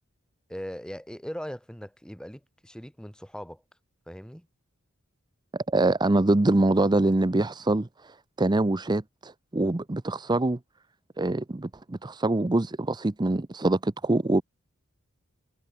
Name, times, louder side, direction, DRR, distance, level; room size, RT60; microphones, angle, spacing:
voice 1, 0.5-3.6 4.1-4.5, equal, 5° left, 5.7 m, -39 dB
voice 2, 5.5-10.6 11.2-14.4, right 2 dB, 20° right, 0.6 m, -24 dB
head